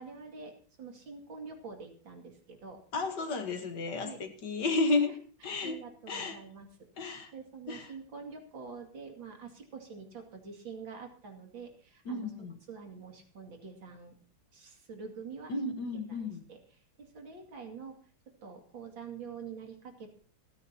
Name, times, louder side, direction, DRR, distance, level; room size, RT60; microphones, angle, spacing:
voice 1, 0.0-2.8 4.0-4.2 5.6-6.7 7.3-12.3 12.7-14.1 14.5-15.5 16.1-16.2 16.5-16.6 17.0-18.0 18.4-20.1, right 5 dB, 65° right, 3 dB, 3.2 m, -46 dB
voice 2, 2.9-6.4 7.0-7.3 7.7-7.9 12.1-12.6 15.5-16.4, left 3 dB, 60° left, 7 dB, 1.9 m, -33 dB
28.0 x 9.9 x 2.9 m, 0.42 s
omnidirectional pair, 2.2 m